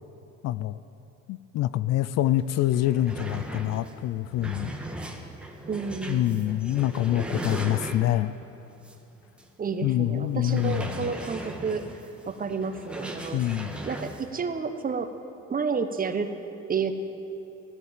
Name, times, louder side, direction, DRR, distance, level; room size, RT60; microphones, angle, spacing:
voice 1, 0.4-0.8 1.3-4.7 6.1-8.3 9.8-11.1 13.3-13.8, left 13 dB, 60° left, 16 dB, 0.5 m, -26 dB
sound 1, 2.3-2.4 2.6-8.3 8.8-9.0 9.4-9.5 10.4-14.3, right 1 dB, 5° right, 1.5 m, -38 dB
voice 2, 5.7-6.5 9.6-11.8 12.3-13.4 13.9-15.1 15.5-16.3 16.7-16.9, right 5 dB, 30° right, 8 dB, 1.1 m, -30 dB
14.5 x 12.0 x 7.5 m, 2.9 s
cardioid pair, 100°, 30 cm